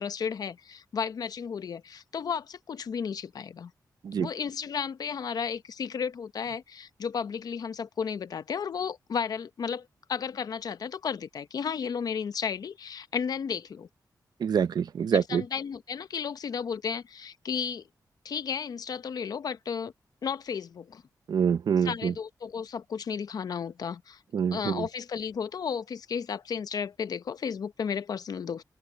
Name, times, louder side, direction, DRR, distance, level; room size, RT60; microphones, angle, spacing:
voice 1, 0.0-3.7 4.2-13.9 15.1-17.8 18.2-19.9 20.2-21.0 21.8-24.2 24.5-28.6, left 6 dB, 60° left, 0.7 m, -33 dB
voice 2, 14.4-15.4 21.3-22.1 24.3-24.9, right 7 dB, 70° right, 0.7 m, -26 dB
open air
wide cardioid pair, 125°, 7 cm